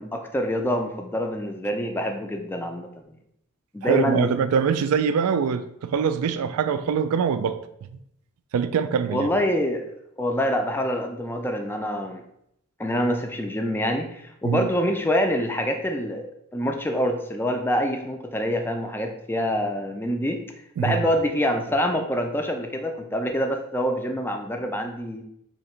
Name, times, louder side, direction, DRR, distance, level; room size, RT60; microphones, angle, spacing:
voice 1, 0.0-2.9 3.7-4.3 9.1-9.9 10.2-12.2 12.8-20.4 20.8-25.2, equal, 10° left, 4 dB, 0.3 m, -26 dB
voice 2, 3.8-7.6 8.5-9.3 14.4-14.7 20.8-21.1, right 6 dB, 85° right, 10 dB, 0.3 m, -23 dB
2.8 x 2.6 x 4.3 m, 0.76 s
head